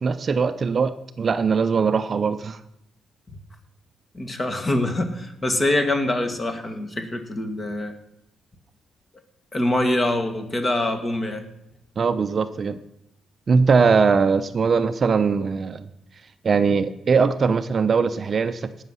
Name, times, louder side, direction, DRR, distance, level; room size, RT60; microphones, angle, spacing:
voice 1, 0.0-2.6 12.0-12.8 13.5-15.9 16.4-18.7, right 5 dB, 45° right, 11 dB, 0.6 m, -21 dB
voice 2, 4.1-7.9 9.5-11.4, left 1 dB, 25° left, 6 dB, 1.7 m, -24 dB
17.5 x 6.5 x 5.6 m, 0.85 s
cardioid pair, 100°, 0 cm